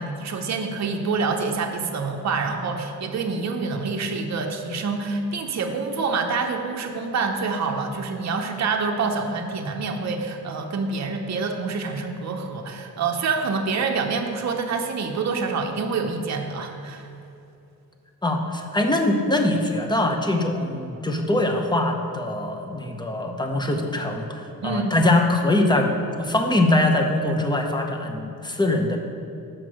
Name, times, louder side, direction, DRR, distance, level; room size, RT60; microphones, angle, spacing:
voice 1, 0.0-17.1 24.6-25.0, right 4 dB, 45° right, 3 dB, 0.8 m, -27 dB
voice 2, 18.2-25.9 26.2-29.0, left 1 dB, 10° left, 3 dB, 0.8 m, -22 dB
5.9 x 4.6 x 6.3 m, 2.7 s
cardioid pair, 80°, 37 cm